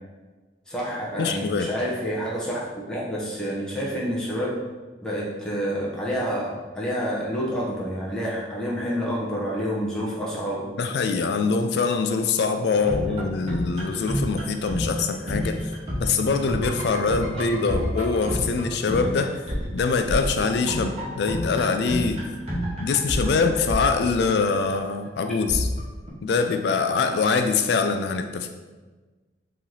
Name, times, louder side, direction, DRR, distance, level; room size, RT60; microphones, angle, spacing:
voice 1, 0.7-2.6 2.9-4.7 5.0-10.8, equal, 5° left, -6 dB, 0.7 m, -28 dB
voice 2, 1.2-1.7 10.8-15.7 16.0-19.3 19.7-22.2 22.8-25.7 26.2-28.5, left 4 dB, 65° left, 7 dB, 0.3 m, -24 dB
sound 1, 12.8-24.6 25.5-26.1, equal, 35° right, 0.9 m, -29 dB
3.1 x 2.8 x 3.8 m, 1.3 s
head